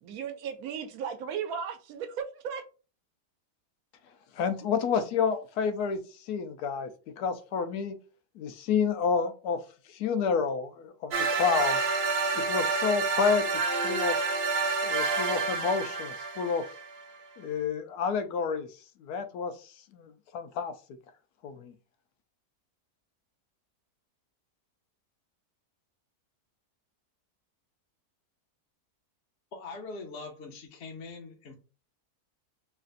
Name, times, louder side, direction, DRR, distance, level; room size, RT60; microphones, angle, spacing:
voice 1, 0.0-2.6, right 7 dB, 75° right, 1.0 m, -36 dB
voice 2, 4.4-6.0 6.3-8.0 8.4-9.6 9.9-11.8 12.3-13.4 13.8-14.2 14.8-16.7 17.4-18.7 19.0-19.5 19.9-20.7 21.4-21.7, left 6 dB, 85° left, 1.1 m, -29 dB
sound 1, 11.1-17.0, right 4 dB, 55° right, 0.7 m, -29 dB
voice 3, 29.5-31.6, left 3 dB, 55° left, 0.8 m, -42 dB
3.3 x 2.5 x 3.9 m
omnidirectional pair, 1.6 m